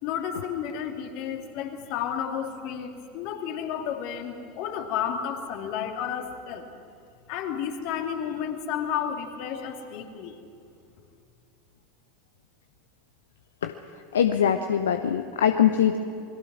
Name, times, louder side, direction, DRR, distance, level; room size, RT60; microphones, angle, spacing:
voice 1, 0.0-6.7 7.3-10.4, left 8 dB, 55° left, 4 dB, 2.6 m, -32 dB
voice 2, 14.1-16.0, left 9 dB, 75° left, 8 dB, 0.9 m, -22 dB
27.5 x 21.5 x 6.2 m, 2.5 s
figure-of-eight pair, 80°, 0 cm